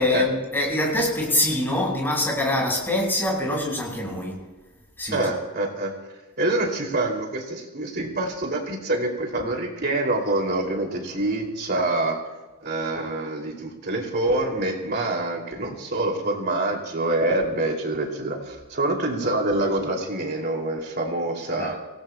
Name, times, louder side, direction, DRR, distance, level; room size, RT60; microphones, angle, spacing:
voice 1, 0.0-4.5 5.0-5.3 21.6-21.7, left 1 dB, 10° left, -2 dB, 5.0 m, -24 dB
voice 2, 5.1-5.9 6.4-12.2 12.6-21.7, right 2 dB, 45° right, 1 dB, 2.6 m, -26 dB
27.0 x 18.5 x 2.2 m, 1.2 s
head